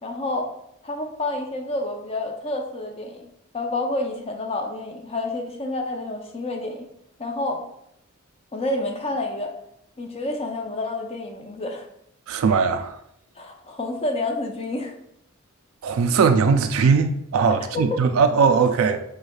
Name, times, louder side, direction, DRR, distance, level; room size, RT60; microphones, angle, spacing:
voice 1, 0.0-0.5 0.8-3.2 3.5-6.9 7.2-7.6 8.5-9.5 10.0-11.9 13.4-14.9 17.7-18.0, left 2 dB, 30° left, 0.5 m, -29 dB
voice 2, 12.3-12.9 15.8-19.0, right 5 dB, 75° right, 0.3 m, -19 dB
5.0 x 3.2 x 2.3 m
head